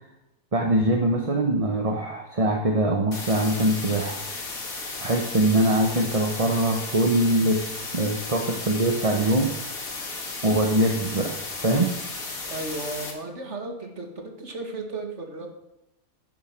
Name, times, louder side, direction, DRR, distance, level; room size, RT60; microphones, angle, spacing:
voice 1, 0.5-4.2 5.0-7.6 7.9-9.6 10.4-11.9, right 1 dB, 25° right, 2 dB, 1.0 m, -23 dB
sound 1, 3.1-13.1, left 3 dB, 60° left, 2.6 m, -34 dB
voice 2, 12.5-14.1 14.4-15.5, right 2 dB, 45° right, 3 dB, 2.2 m, -34 dB
11.0 x 7.6 x 7.4 m, 0.92 s
omnidirectional pair, 1.7 m